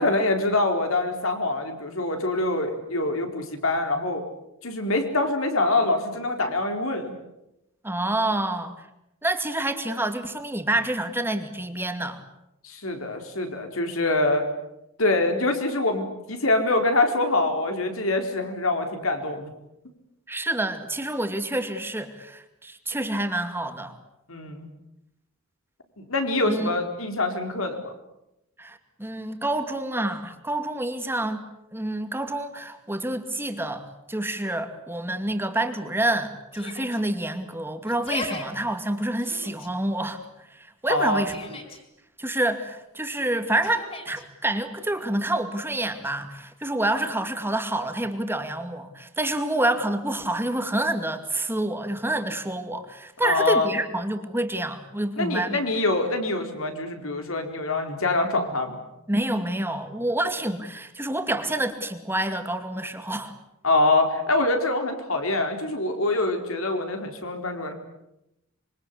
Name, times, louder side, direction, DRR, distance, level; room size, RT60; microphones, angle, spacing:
voice 1, 0.0-4.2 4.6-7.2 12.6-14.4 15.0-19.5 24.3-24.7 26.0-27.9 40.9-41.2 53.2-53.7 55.2-58.8 63.6-67.7, left 2 dB, 70° left, 5 dB, 4.4 m, -25 dB
voice 2, 7.8-8.7 9.2-12.2 20.3-24.0 26.4-26.7 28.6-31.4 31.7-40.2 40.5-41.4 42.2-55.6 59.1-63.3, right 1 dB, 10° right, 7 dB, 2.4 m, -28 dB
Yell, 36.5-37.0 37.9-38.4 39.2-39.7 40.9-41.8 43.6-44.2, left 2 dB, 30° left, 5.3 m, -36 dB
26.0 x 24.5 x 8.5 m, 0.85 s
head